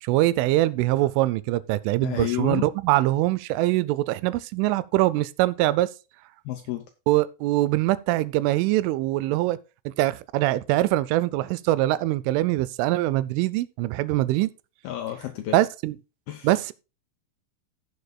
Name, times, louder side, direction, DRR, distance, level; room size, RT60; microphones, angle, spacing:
voice 1, 0.0-5.9 7.1-9.6 9.9-14.5 15.5-16.0 16.4-16.7, right 16 dB, 85° right, 3.1 m, -23 dB
voice 2, 2.0-2.7 6.5-6.8 14.8-15.6 16.3-16.5, left 13 dB, 90° left, 2.1 m, -30 dB
17.0 x 6.8 x 2.2 m
omnidirectional pair, 5.6 m